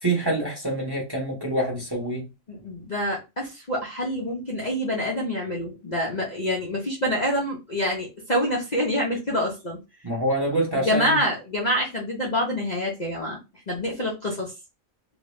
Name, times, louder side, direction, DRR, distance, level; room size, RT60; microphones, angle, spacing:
voice 1, 0.0-2.3 10.0-11.2, right 1 dB, 20° right, 1.0 m, -26 dB
voice 2, 2.5-9.8 10.7-13.4 13.7-14.5, equal, 35° left, 0.9 m, -26 dB
3.1 x 2.8 x 3.1 m
omnidirectional pair, 1.5 m